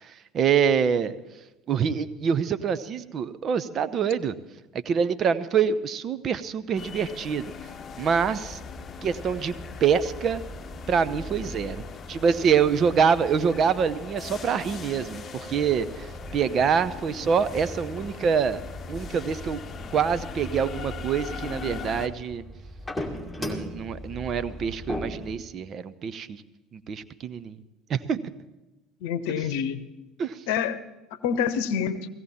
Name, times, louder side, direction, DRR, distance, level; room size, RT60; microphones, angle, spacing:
voice 1, 0.3-1.2 1.7-4.4 4.9-7.5 8.0-8.6 9.0-9.5 9.8-10.4 10.9-11.8 12.1-18.6 18.9-19.6 19.9-22.4 23.4-26.4 26.7-27.6 27.9-28.2 30.2-30.4, right 7 dB, 45° right, 14 dB, 0.7 m, -25 dB
sound 1, 6.8-22.1, left 6 dB, 35° left, 0.9 m, -41 dB
sound 2, 7.9-25.4, left 1 dB, 5° left, 2.4 m, -40 dB
voice 2, 29.0-29.9 30.5-30.8 31.1-32.1, left 7 dB, 70° left, 14 dB, 0.8 m, -27 dB
17.0 x 16.0 x 4.3 m, 1.1 s
hypercardioid pair, 70°, 0 cm